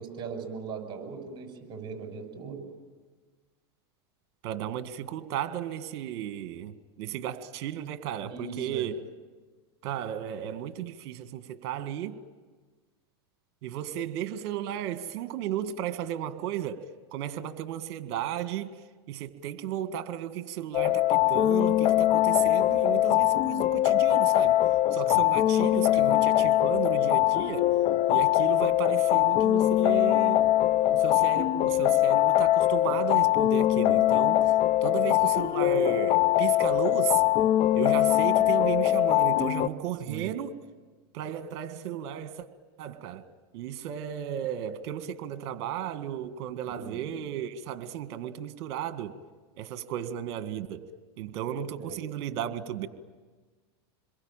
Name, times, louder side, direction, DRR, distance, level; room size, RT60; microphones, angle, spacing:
voice 1, 0.0-2.6 8.2-8.9 25.1-25.2 25.9-26.1 40.0-40.3 46.7-47.1 51.8-52.0, right 5 dB, 35° right, 6.6 m, -39 dB
voice 2, 4.4-9.0 9.8-12.2 13.6-24.6 24.9-27.8 28.1-30.4 30.9-34.5 34.8-37.2 37.7-40.6 41.1-42.5 42.8-43.3 43.5-49.2 49.6-50.9 51.2-52.9, right 10 dB, 60° right, 1.8 m, -34 dB
sound 1, 20.7-39.7, left 14 dB, 45° left, 0.9 m, -22 dB
27.5 x 22.5 x 9.0 m
hypercardioid pair, 110°, 13 cm